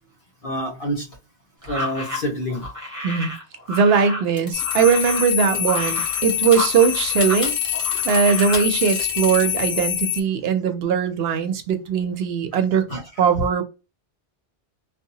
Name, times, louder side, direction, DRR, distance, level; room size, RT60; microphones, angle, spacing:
voice 1, 0.4-1.1 1.6-2.7 5.5-5.6 7.9-8.1 9.4-9.5 12.9-13.0, equal, 60° left, 1.3 m, -28 dB
sound 1, 1.6-7.4 7.7-8.7, left 1 dB, 20° right, 0.8 m, -32 dB
voice 2, 3.7-7.6 8.0-13.6, right 6 dB, 75° right, 0.8 m, -20 dB
sound 2, 4.4-6.7 6.9-9.4, left 2 dB, 35° left, 0.8 m, -33 dB
sound 3, 4.5-10.2, left 12 dB, 80° left, 0.8 m, -25 dB
2.7 x 2.1 x 2.7 m
omnidirectional pair, 1.1 m